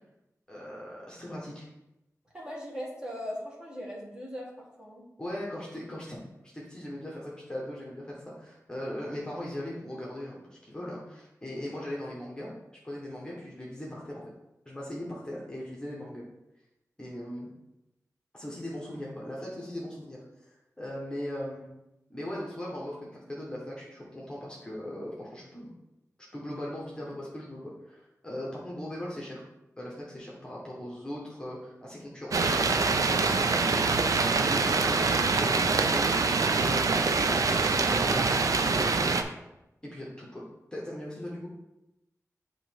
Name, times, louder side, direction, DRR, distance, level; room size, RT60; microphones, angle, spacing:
voice 1, 0.5-1.7 5.2-6.2 6.4-12.5 12.8-14.3 14.6-16.2 17.0-17.5 18.3-21.7 22.1-25.7 26.2-29.4 29.8-33.2 33.5-39.1 39.8-40.4 40.7-41.5, left 1 dB, 15° left, -5 dB, 1.2 m, -39 dB
voice 2, 2.3-5.0, equal, 15° right, -4 dB, 1.7 m, -39 dB
sound 1, 32.3-39.2, right 4 dB, 75° right, 0.5 m, -25 dB
7.8 x 3.0 x 4.5 m, 0.93 s
wide cardioid pair, 100°, 6 cm